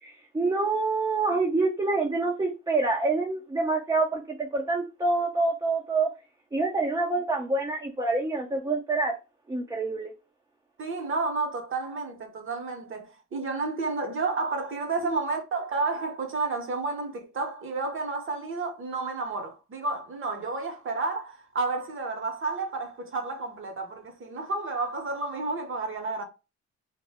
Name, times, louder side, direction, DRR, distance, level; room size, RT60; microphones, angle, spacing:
voice 1, 0.0-6.1 6.5-9.2 9.5-10.1, right 3 dB, 15° right, 0.4 m, -26 dB
voice 2, 10.8-26.2, right 3 dB, 45° right, 0.8 m, -31 dB
2.1 x 2.0 x 3.4 m
cardioid pair, 90°, 30 cm